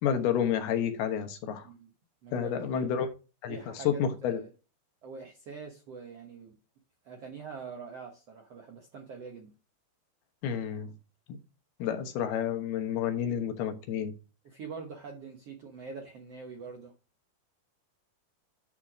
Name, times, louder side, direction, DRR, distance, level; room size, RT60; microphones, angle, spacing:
voice 1, 0.0-1.7 2.3-3.1 3.4-4.4 10.4-10.9 11.8-14.1, left 8 dB, 75° left, 3.1 m, -30 dB
voice 2, 2.2-2.8 3.5-4.5 5.0-6.5 7.0-9.5 14.4-16.9, right 5 dB, 65° right, 1.5 m, -44 dB
11.0 x 4.5 x 5.0 m
omnidirectional pair, 4.6 m